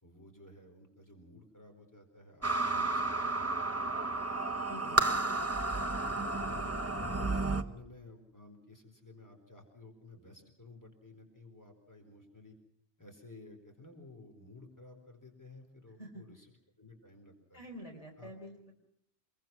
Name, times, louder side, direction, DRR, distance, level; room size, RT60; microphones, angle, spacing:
voice 1, 0.0-3.0 3.4-4.3 4.8-5.4 6.0-6.7 7.1-12.5 13.0-16.5 16.8-17.6 18.2-18.3, left 2 dB, 15° left, 4 dB, 4.3 m, -54 dB
sound 1, 2.4-7.6, right 2 dB, 15° right, 1.0 m, -32 dB
voice 2, 4.5-5.2 16.0-16.2 17.5-18.7, equal, 35° left, 0 dB, 4.0 m, -48 dB
25.5 x 23.0 x 6.1 m, 0.71 s
omnidirectional pair, 1.1 m